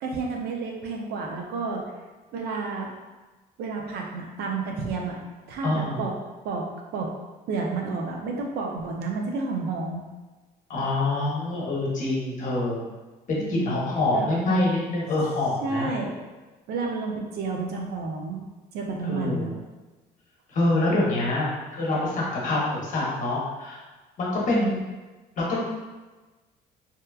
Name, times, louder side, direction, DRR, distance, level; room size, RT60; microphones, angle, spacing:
voice 1, 0.0-1.8 2.3-2.9 3.6-5.2 5.5-6.1 6.4-6.7 6.9-7.1 7.5-10.0 13.4-13.8 14.1-14.3 15.6-16.2 16.7-18.4 18.7-19.5 24.5-24.8, right 4 dB, 70° right, 1 dB, 0.5 m, -30 dB
voice 2, 5.6-6.0 10.7-12.8 13.3-15.9 19.0-19.5 20.5-23.8 24.2-24.8 25.4-25.6, left 2 dB, 50° left, -5 dB, 0.9 m, -26 dB
2.8 x 2.2 x 2.3 m, 1.2 s
cardioid pair, 110°, 17 cm